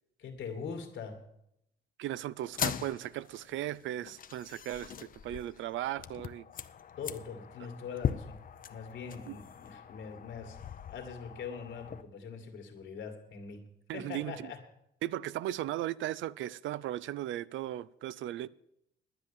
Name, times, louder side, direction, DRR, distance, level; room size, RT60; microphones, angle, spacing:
voice 1, 0.2-1.2 7.0-8.4 8.7-10.6 10.9-13.7 13.9-14.6, left 6 dB, 70° left, 2.2 m, -42 dB
voice 2, 2.0-6.4 9.3-9.4 13.9-14.5 15.0-18.5, right 13 dB, 75° right, 0.4 m, -37 dB
sound 1, 2.4-12.0, left 8 dB, 45° left, 0.6 m, -40 dB
10.5 x 9.4 x 7.2 m
cardioid pair, 90°, 20 cm